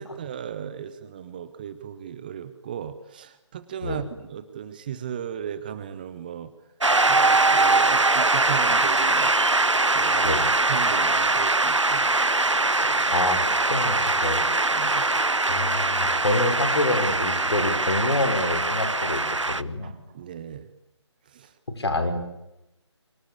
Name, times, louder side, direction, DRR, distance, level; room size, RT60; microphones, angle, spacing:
voice 1, 0.0-6.5 7.1-9.3 9.9-10.4 10.7-12.1 14.7-15.1 19.8-20.6 21.3-21.5, right 9 dB, 20° right, 13 dB, 0.9 m, -36 dB
Shout / Cheering / Applause, 6.8-19.6, right 2 dB, 80° right, 1.0 m, -22 dB
voice 2, 13.1-14.4 14.8-19.2 19.5-19.9 21.7-22.2, left 2 dB, 60° left, 7 dB, 4.8 m, -27 dB
25.0 x 24.5 x 8.5 m, 0.91 s
figure-of-eight pair, 150°, 15 cm